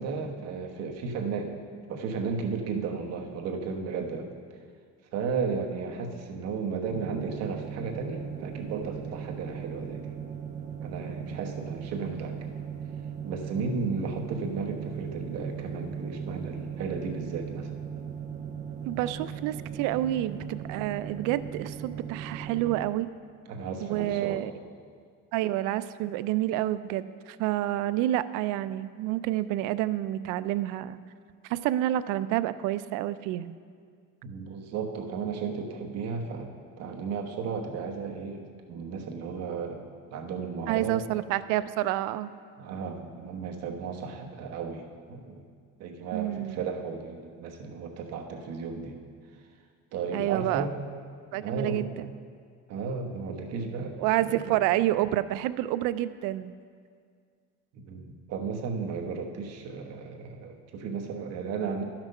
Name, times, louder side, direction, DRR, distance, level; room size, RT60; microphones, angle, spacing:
voice 1, 0.0-1.5 1.9-4.3 5.1-10.1 10.8-12.4 13.2-17.7 23.5-24.4 34.2-36.5 36.8-41.0 42.6-45.4 45.8-49.0 49.9-50.7 51.3-51.9 52.7-54.6 57.7-61.8, right 5 dB, 55° right, 3 dB, 1.1 m, -34 dB
sound 1, 6.9-22.9, right 7 dB, 25° right, 0.5 m, -38 dB
voice 2, 18.8-23.1 23.8-24.5 25.3-31.0 31.4-33.5 40.7-42.3 46.1-46.6 50.1-50.7 51.3-52.1 54.0-56.5, right 14 dB, 80° right, 14 dB, 0.5 m, -28 dB
12.0 x 6.0 x 5.4 m, 2.1 s
cardioid pair, 155°, 30 cm